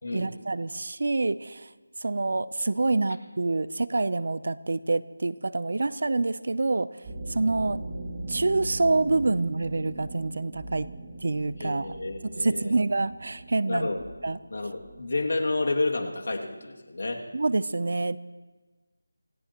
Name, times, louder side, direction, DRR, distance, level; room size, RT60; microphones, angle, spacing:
voice 1, 0.1-1.7 2.0-6.9 7.3-7.8 8.3-10.9 11.2-11.9 12.2-13.9 14.2-14.4 17.3-18.2, right 3 dB, 50° right, 16 dB, 0.5 m, -27 dB
sound 1, 7.0-17.3, right 2 dB, 15° right, 2.1 m, -40 dB
voice 2, 11.6-12.7 13.7-14.0 14.5-17.2, left 2 dB, 60° left, 1 dB, 2.4 m, -30 dB
26.5 x 17.5 x 3.0 m, 1.3 s
figure-of-eight pair, 175°, 0 cm